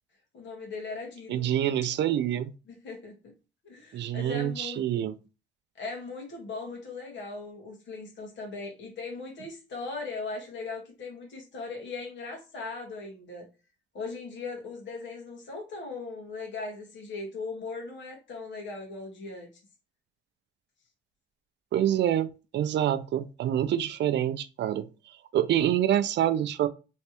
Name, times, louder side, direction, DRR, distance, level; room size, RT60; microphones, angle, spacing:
voice 1, 0.3-1.5 2.7-3.3 3.6-4.8 5.7-13.4 13.9-19.5, left 3 dB, 65° left, 1.6 m, -39 dB
voice 2, 1.3-2.5 3.9-5.1 21.7-24.9 25.3-26.7, right 11 dB, 65° right, 0.5 m, -26 dB
3.3 x 3.1 x 2.9 m
cardioid pair, 90°, 20 cm